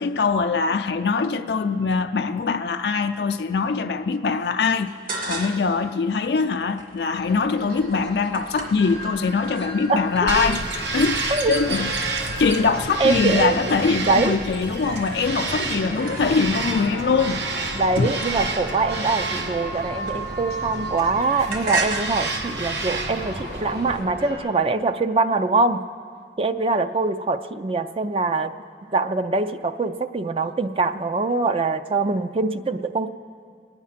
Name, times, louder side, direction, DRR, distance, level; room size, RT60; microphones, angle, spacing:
voice 1, 0.0-4.9 5.3-11.9 12.4-17.4 18.0-18.1, left 4 dB, 70° left, 7 dB, 0.4 m, -23 dB
sound 1, 4.9-5.8 6.2-9.7 10.1-10.7 10.9-11.4 11.6-16.7 17.3-20.6 20.9-24.0, right 3 dB, 50° right, 1.4 m, -36 dB
sound 2, 7.1-24.4, equal, 70° right, 5.1 m, -35 dB
Bird vocalization bird call bird song, 10.3-24.0, right 3 dB, 85° right, 1.1 m, -30 dB
voice 2, 13.0-13.7 14.0-14.4 17.7-25.8 26.4-28.5 28.9-33.1, right 3 dB, 30° right, 9 dB, 0.4 m, -23 dB
22.5 x 9.5 x 5.8 m, 2.2 s
head